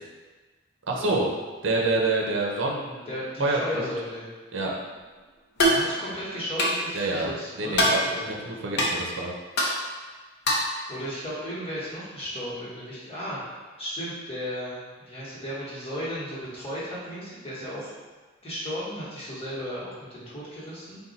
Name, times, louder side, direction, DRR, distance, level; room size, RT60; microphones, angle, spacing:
voice 1, 0.9-1.3 1.6-3.1 3.4-3.9 4.5-4.7 6.9-7.3 7.6-8.0 8.2-9.3, right 2 dB, 70° right, -1 dB, 0.6 m, -27 dB
voice 2, 3.1-4.3 5.6-8.5 10.9-13.4 13.8-14.8 15.1-17.9 18.4-21.0, equal, 30° left, -9 dB, 1.3 m, -35 dB
sound 1, 5.6-5.8 6.6-6.8 7.7-8.0 8.8-8.9 9.6-9.7 10.5-10.7, equal, 60° left, 0.7 m, -21 dB
4.1 x 2.3 x 4.0 m, 1.3 s
head